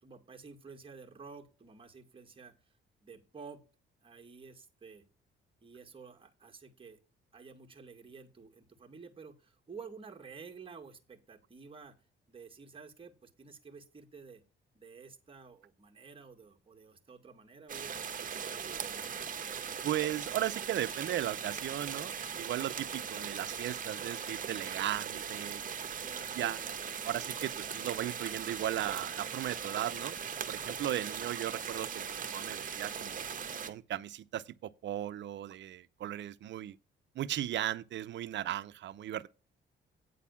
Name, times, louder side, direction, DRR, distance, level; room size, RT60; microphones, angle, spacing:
voice 1, 0.0-2.6 3.0-3.6 4.0-5.0 5.6-7.0 7.3-12.0 12.3-14.4 14.7-19.1 26.0-26.8, right 5 dB, 25° right, 2.0 m, -51 dB
sound 1, 17.7-33.7, right 7 dB, 40° right, 1.2 m, -39 dB
voice 2, 19.8-25.6 26.4-26.6 27.0-30.2 30.5-33.3 33.7-36.8 37.1-39.3, right 12 dB, 65° right, 0.7 m, -36 dB
9.2 x 4.1 x 7.1 m
cardioid pair, 90°, 20 cm